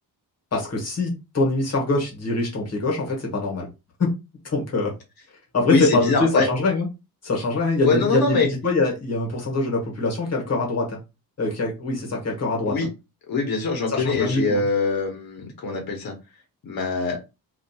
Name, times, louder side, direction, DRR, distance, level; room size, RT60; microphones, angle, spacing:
voice 1, 0.5-3.7 4.4-4.9 5.5-6.9 7.2-11.0 11.4-12.8 13.9-14.7, left 2 dB, 45° left, -1 dB, 1.0 m, -24 dB
voice 2, 5.7-6.5 7.8-8.5 12.7-12.9 13.3-16.1 16.6-17.2, left 4 dB, 65° left, 1 dB, 0.8 m, -23 dB
2.7 x 2.4 x 2.2 m, 0.26 s
wide cardioid pair, 165°, 37 cm